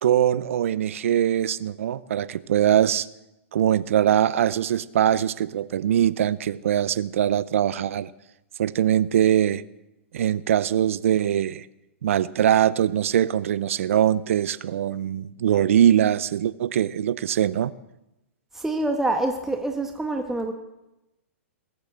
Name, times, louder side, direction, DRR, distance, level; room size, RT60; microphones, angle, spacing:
voice 1, 0.0-3.1 3.5-8.1 8.6-9.6 10.1-11.6 12.0-17.7, right 10 dB, 70° right, 0.7 m, -22 dB
voice 2, 18.5-20.5, right 2 dB, 5° right, 1.4 m, -26 dB
21.5 x 8.3 x 7.6 m
hypercardioid pair, 120°, 8 cm